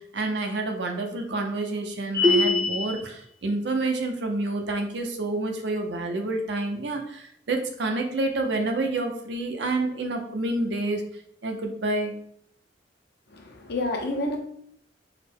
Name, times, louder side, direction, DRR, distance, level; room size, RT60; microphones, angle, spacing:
voice 1, 0.0-11.0 11.4-12.1, right 2 dB, 70° right, 3 dB, 0.6 m, -28 dB
sound 1, 2.1-3.0, left 3 dB, 25° right, 0.6 m, -22 dB
voice 2, 13.3-14.4, left 2 dB, 60° left, 2 dB, 0.8 m, -29 dB
4.1 x 2.1 x 4.3 m, 0.68 s
head